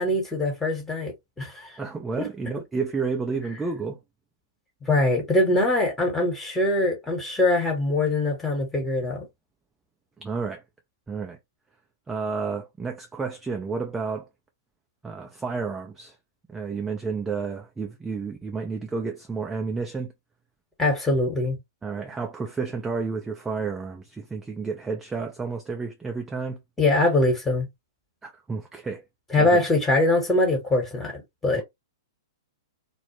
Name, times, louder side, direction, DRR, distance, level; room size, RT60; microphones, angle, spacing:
voice 1, 0.0-1.8 2.2-2.3 4.8-9.3 20.8-21.6 26.8-27.7 29.3-31.6, left 2 dB, 10° left, 1.0 m, -23 dB
voice 2, 1.8-4.0 10.2-10.6 11.1-11.4 12.1-14.3 15.0-16.2 16.5-20.1 21.8-26.6 28.2-29.0 29.4-29.6, right 4 dB, 10° right, 0.4 m, -31 dB
2.3 x 2.0 x 2.8 m
figure-of-eight pair, 110°, 2 cm